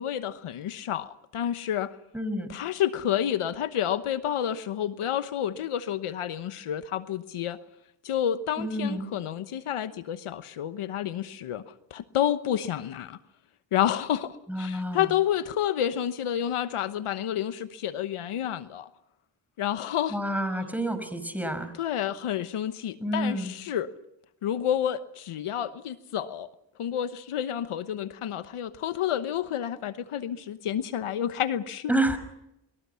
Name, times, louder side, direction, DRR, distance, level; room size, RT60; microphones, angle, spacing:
voice 1, 0.0-2.0 2.5-7.6 8.0-13.2 13.7-18.9 19.6-20.2 21.8-23.9 24.4-26.5 26.8-31.9, left 10 dB, 80° left, 12 dB, 1.1 m, -29 dB
voice 2, 2.1-2.5 8.6-9.1 14.5-15.1 20.1-21.7 23.0-23.5 31.9-32.2, right 1 dB, 5° right, 10 dB, 5.5 m, -29 dB
28.5 x 21.5 x 5.7 m, 0.83 s
cardioid pair, 50°, 50 cm